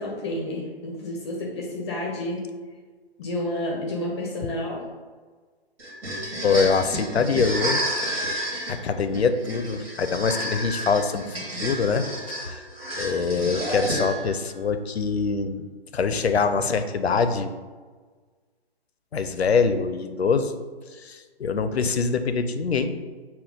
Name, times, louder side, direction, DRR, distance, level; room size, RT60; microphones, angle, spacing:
voice 1, 0.0-2.4 3.2-4.8, left 1 dB, 25° left, -2 dB, 0.6 m, -30 dB
sound 1, 5.8-14.4, right 1 dB, 65° right, 1.5 m, -30 dB
voice 2, 6.4-8.4 8.7-11.4 11.6-12.6 13.0-15.7 15.9-17.5 19.1-20.5 20.9-22.9, left 5 dB, 85° left, 9 dB, 0.5 m, -24 dB
5.7 x 2.2 x 3.7 m, 1.4 s
figure-of-eight pair, 135°, 31 cm